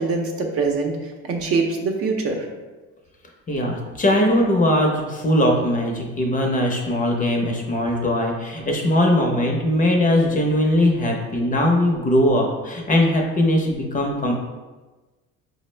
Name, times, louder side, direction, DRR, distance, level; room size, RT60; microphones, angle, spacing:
voice 1, 0.0-2.5, right 4 dB, 50° right, 1 dB, 0.7 m, -24 dB
voice 2, 3.5-14.3, left 1 dB, 25° left, 1 dB, 0.6 m, -20 dB
4.8 x 2.1 x 3.2 m, 1.2 s
supercardioid pair, 100°, 31 cm